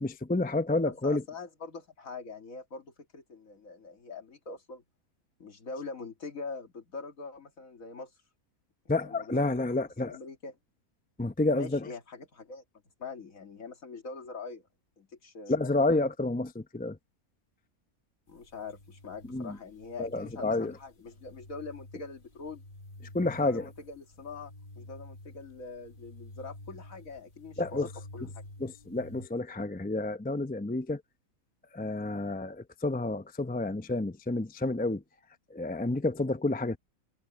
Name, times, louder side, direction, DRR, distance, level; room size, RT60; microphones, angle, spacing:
voice 1, 0.0-1.2 8.9-10.1 11.2-11.9 15.5-17.0 19.3-19.6 20.0-20.7 23.1-23.7 27.6-27.9 28.6-31.0 31.7-35.0 35.5-36.8, left 2 dB, 10° left, 0.5 m, -29 dB
voice 2, 0.9-4.8 5.4-8.1 9.0-9.4 9.7-10.6 11.5-12.6 13.0-14.6 15.0-15.6 18.3-22.6 23.2-28.5, left 4 dB, 65° left, 2.6 m, -43 dB
sound 1, 18.3-29.3, left 1 dB, 35° left, 1.5 m, -50 dB
omnidirectional pair, 1.5 m